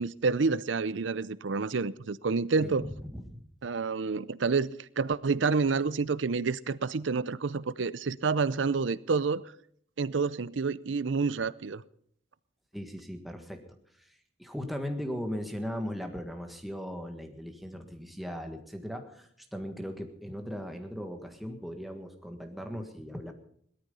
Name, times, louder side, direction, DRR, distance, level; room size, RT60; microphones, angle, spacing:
voice 1, 0.0-2.8 3.6-9.4 10.0-11.8, right 4 dB, 80° right, 0.6 m, -28 dB
voice 2, 2.6-3.4 12.7-13.6 13.9-23.3, equal, ahead, 1.6 m, -38 dB
18.0 x 13.0 x 5.5 m
head